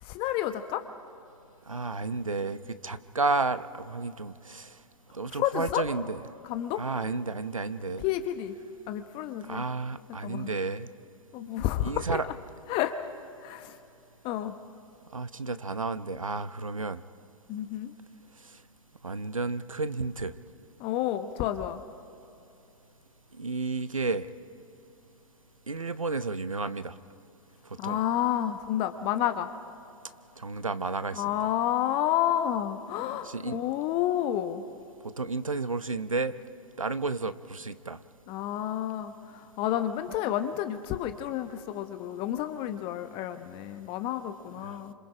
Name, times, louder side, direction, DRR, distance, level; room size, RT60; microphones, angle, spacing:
voice 1, 0.0-0.8 5.3-5.8 6.4-6.8 8.0-8.5 8.9-9.6 10.2-10.5 11.3-12.1 12.7-12.9 13.4-13.8 14.2-14.6 17.5-17.9 20.8-21.8 27.8-29.5 31.1-34.6 38.3-44.9, left 12 dB, 30° left, 9 dB, 1.0 m, -30 dB
voice 2, 1.7-4.7 5.1-6.2 6.8-8.0 9.5-10.9 11.8-12.2 15.1-17.0 19.0-20.3 23.3-24.3 25.7-26.9 27.8-28.0 30.4-31.5 33.2-33.6 35.2-36.3 36.8-38.0 44.6-44.7, right 3 dB, 85° right, 14 dB, 0.8 m, -32 dB
30.0 x 26.5 x 5.0 m, 2.8 s
figure-of-eight pair, 110°, 17 cm